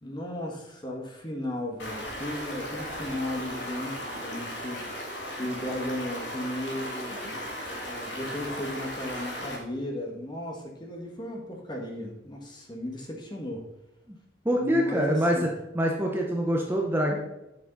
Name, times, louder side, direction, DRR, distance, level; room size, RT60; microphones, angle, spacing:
voice 1, 0.0-13.6 14.5-15.5, left 1 dB, 25° left, 1 dB, 1.5 m, -35 dB
Stream, 1.8-9.6, equal, 70° left, 2.4 m, -36 dB
voice 2, 14.4-15.5 15.7-17.2, equal, 10° right, 0 dB, 1.0 m, -25 dB
8.8 x 7.2 x 4.1 m, 0.91 s
head